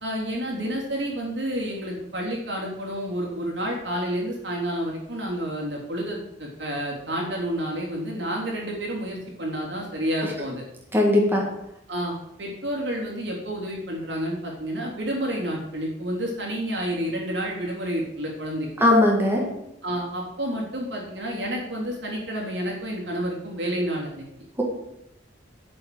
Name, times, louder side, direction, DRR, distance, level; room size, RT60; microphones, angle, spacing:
voice 1, 0.0-10.6 11.9-18.7 19.8-24.3, equal, 75° right, -2 dB, 3.3 m, -30 dB
voice 2, 10.9-11.4 18.8-19.4, left 1 dB, 10° right, -2 dB, 1.8 m, -19 dB
8.0 x 6.4 x 7.8 m, 0.82 s
head